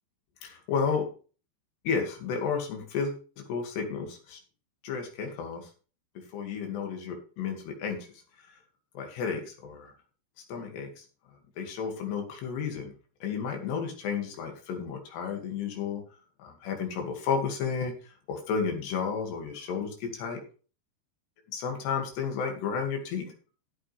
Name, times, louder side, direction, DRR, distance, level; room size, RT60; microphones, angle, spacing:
voice 1, 0.4-1.1 1.8-4.4 4.8-5.7 6.3-8.0 8.4-8.5 8.9-9.9 10.5-11.0 11.6-12.9 13.2-16.0 16.4-20.4 21.5-23.3, left 6 dB, 80° left, 3 dB, 4.4 m, -32 dB
14.0 x 8.6 x 3.4 m, 0.37 s
omnidirectional pair, 4.8 m